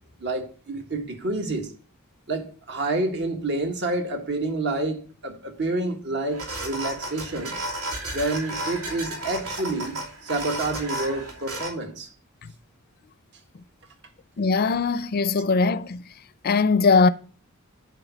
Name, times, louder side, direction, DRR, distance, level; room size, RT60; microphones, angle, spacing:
voice 1, 0.2-1.7 2.3-7.6 8.1-12.1, right 2 dB, 55° right, 1.5 m, -28 dB
sound 1, 6.3-11.7, right 1 dB, 85° right, 2.9 m, -33 dB
voice 2, 14.4-16.0 16.4-17.1, left 4 dB, 45° left, 0.5 m, -20 dB
8.1 x 4.7 x 7.1 m
head